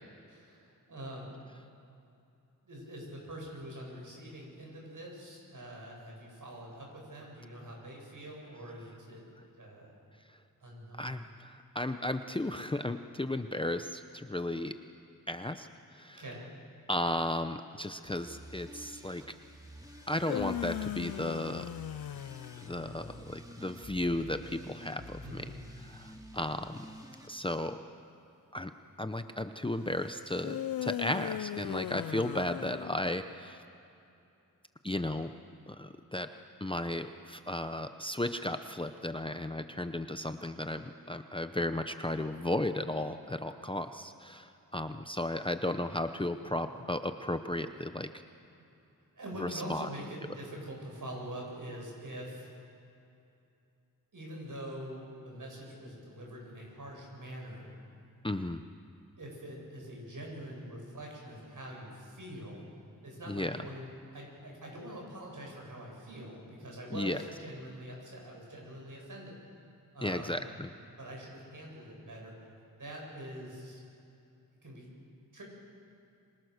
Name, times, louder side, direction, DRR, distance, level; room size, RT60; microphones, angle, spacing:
voice 1, 0.3-1.3 2.6-9.2 9.6-9.9 10.6-11.2 16.1-16.4 25.2-25.6 46.0-46.2 46.7-46.8 48.5-48.7 49.1-52.5 54.1-57.7 59.2-62.6 63.0-63.9 64.1-69.4 69.9-70.4 71.0-72.3 72.8-73.8 74.6-74.9 75.3-75.4, equal, 65° right, -1 dB, 7.7 m, -44 dB
voice 2, 11.0-14.7 15.3-15.7 15.9-16.2 16.9-19.2 20.1-21.6 22.6-25.4 25.8-26.9 27.3-27.8 28.5-28.7 29.0-33.6 34.8-35.3 35.7-36.3 36.6-48.1 49.4-49.9 58.2-58.6 63.3-63.6 66.9-67.2 70.0-70.7, left 1 dB, 15° left, 8 dB, 0.7 m, -34 dB
sound 1, 18.0-27.3, equal, 10° right, 2.3 m, -50 dB
sound 2, 20.0-23.3 30.4-33.4, left 12 dB, 80° left, 0.5 m, -38 dB
27.0 x 25.5 x 6.6 m, 2.7 s
wide cardioid pair, 120°, 35 cm